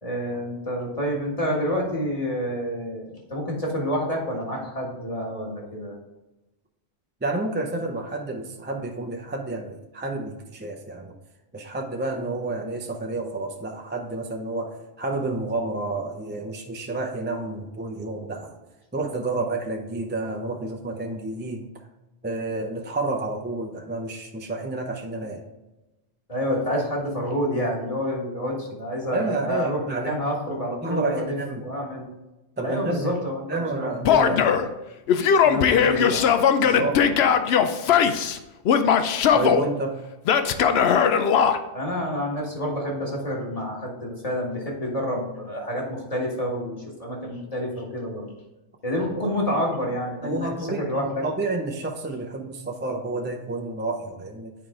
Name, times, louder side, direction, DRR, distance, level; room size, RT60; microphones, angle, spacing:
voice 1, 0.0-6.0 26.3-32.1 32.6-33.9 34.2-34.4 35.4-36.3 36.6-37.1 37.5-37.6 41.7-48.3 48.8-50.5 50.8-51.2, equal, 35° left, -2 dB, 1.6 m, -28 dB
voice 2, 7.2-11.1 11.5-18.6 18.9-21.7 22.2-25.4 29.1-30.1 30.8-31.6 32.6-33.2 33.5-34.4 36.7-36.9 39.3-40.0 49.2-49.3 50.2-54.5, right 2 dB, 15° right, 3 dB, 0.5 m, -30 dB
Male speech man speaking / Yell, 34.1-34.7 35.1-38.4 38.7-39.6 40.3-41.6, left 7 dB, 70° left, 0.8 m, -19 dB
9.2 x 4.8 x 3.7 m, 1.0 s
omnidirectional pair, 1.1 m